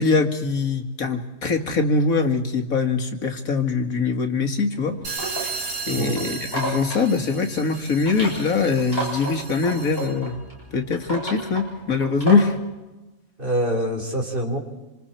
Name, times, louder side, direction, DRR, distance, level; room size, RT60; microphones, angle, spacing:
voice 1, 0.0-5.0 5.4-5.5 5.9-10.3 10.7-12.5, left 4 dB, 90° left, 5 dB, 2.3 m, -22 dB
sound 1, 4.7-12.6, right 1 dB, 15° left, 7.6 m, -33 dB
sound 2, 5.0-10.3, right 4 dB, 80° right, 2.9 m, -35 dB
voice 2, 13.4-14.6, right 1 dB, 40° right, -1 dB, 4.2 m, -25 dB
26.5 x 26.5 x 4.5 m, 1.0 s
omnidirectional pair, 1.4 m